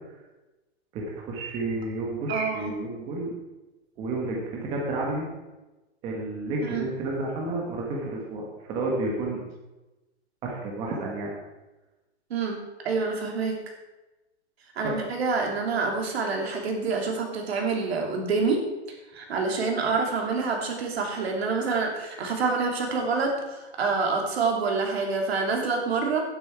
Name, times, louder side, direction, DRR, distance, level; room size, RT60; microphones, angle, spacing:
voice 1, 0.9-3.3 4.0-5.3 6.0-9.4 10.4-11.3 14.8-14.9, right 2 dB, 15° right, -2 dB, 1.5 m, -31 dB
voice 2, 2.3-2.7 6.6-6.9 12.3-13.6 14.7-18.6 19.1-26.2, right 4 dB, 65° right, 1 dB, 3.0 m, -27 dB
11.5 x 9.8 x 4.7 m, 1.1 s
hypercardioid pair, 170°, 34 cm